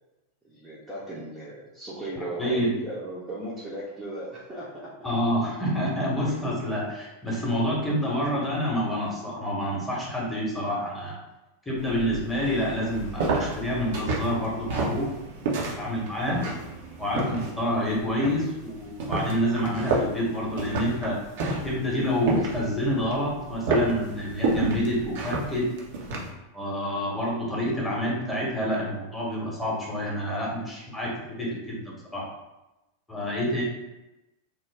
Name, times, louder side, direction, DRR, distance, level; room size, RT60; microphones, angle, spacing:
voice 1, 0.4-4.9, right 1 dB, 10° right, -8 dB, 0.7 m, -37 dB
voice 2, 2.2-2.8 5.0-11.2 11.7-15.1 15.8-16.4 17.0-21.2 21.6-25.7 26.5-32.3 33.1-33.6, equal, 10° left, -5 dB, 1.0 m, -28 dB
sound 1, 11.8-26.3, right 2 dB, 55° right, 0.6 m, -31 dB
3.0 x 2.2 x 3.4 m, 0.99 s
figure-of-eight pair, 90°, 0 cm